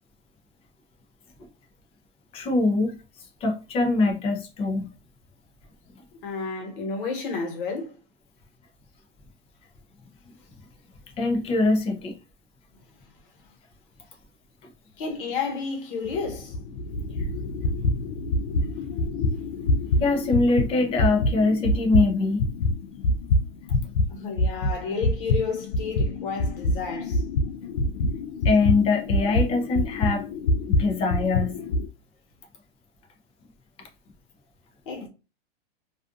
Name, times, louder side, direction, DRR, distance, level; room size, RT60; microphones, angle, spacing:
voice 1, 2.3-2.9 3.4-4.9 11.2-12.1 20.0-22.4 28.4-30.3 30.7-31.6, left 3 dB, 20° left, 0.5 m, -23 dB
voice 2, 6.2-7.9 15.0-16.5 24.1-27.2 34.9-35.1, left 4 dB, 65° left, 1.2 m, -31 dB
sound 1, 16.1-24.1 24.4-31.9, left 2 dB, 80° left, 0.5 m, -25 dB
2.5 x 2.4 x 2.4 m
supercardioid pair, 145°, 30 cm